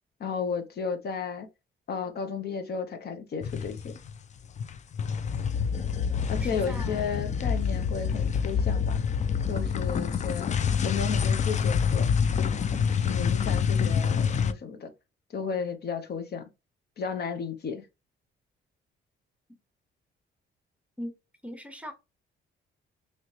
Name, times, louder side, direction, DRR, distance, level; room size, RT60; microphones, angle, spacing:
voice 1, 0.2-1.5 1.9-3.9 6.3-9.0 9.5-10.5 10.8-12.1 13.0-14.9 15.3-16.4 17.0-17.9, left 6 dB, 55° left, 0.8 m, -33 dB
sound 1, 3.4-4.2 4.4-14.5, left 6 dB, 35° left, 0.4 m, -27 dB
voice 2, 6.3-7.2 21.0-21.1 21.4-21.9, equal, 5° right, 0.8 m, -40 dB
3.2 x 3.0 x 2.7 m
cardioid pair, 90°, 20 cm